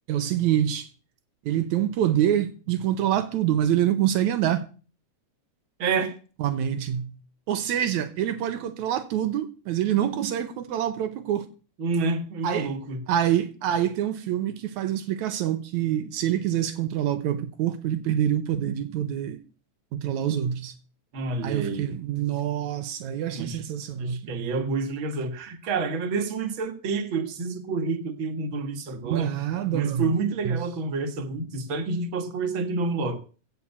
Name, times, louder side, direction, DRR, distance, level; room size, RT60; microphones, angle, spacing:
voice 1, 0.1-0.9 1.5-4.6 6.4-7.1 7.5-11.5 12.4-12.7 13.1-19.4 19.9-20.7 21.4-24.5 29.0-30.7, right 10 dB, 80° right, 2.3 m, -26 dB
voice 2, 5.8-6.2 11.8-13.0 21.1-21.9 23.3-23.6 24.0-29.3 29.7-33.2, right 4 dB, 45° right, 2.2 m, -28 dB
16.0 x 5.5 x 8.2 m
omnidirectional pair, 3.4 m